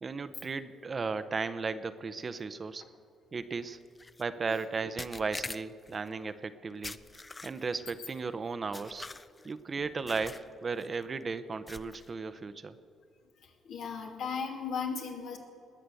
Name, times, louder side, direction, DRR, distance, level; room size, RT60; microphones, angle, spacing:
voice 1, 0.0-2.8 3.3-3.8 4.2-7.0 7.4-9.1 9.4-12.7, right 4 dB, 35° right, 12 dB, 0.8 m, -35 dB
sound 1, 4.0-4.2 5.0-6.0 6.8-7.8 8.7-9.5 10.1-10.5 10.8-11.0 11.7-12.1, left 3 dB, 20° left, 0.5 m, -43 dB
voice 2, 13.4-15.4, left 5 dB, 80° left, 2 dB, 2.5 m, -36 dB
20.0 x 6.7 x 7.7 m, 2.4 s
cardioid pair, 90°, 0 cm